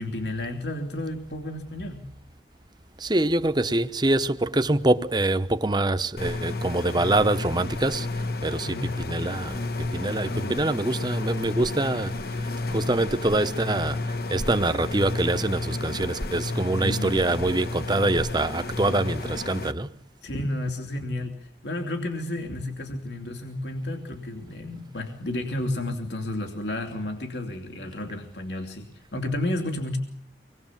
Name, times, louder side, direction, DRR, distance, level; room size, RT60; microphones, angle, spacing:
voice 1, 0.0-2.1 8.6-8.9 10.2-10.7 16.8-17.2 20.2-30.0, left 1 dB, 80° left, 2.9 m, -32 dB
voice 2, 3.0-19.9, right 2 dB, 25° right, 0.9 m, -25 dB
sound 1, 6.2-19.7, left 2 dB, 60° left, 1.1 m, -31 dB
26.0 x 21.0 x 7.4 m
head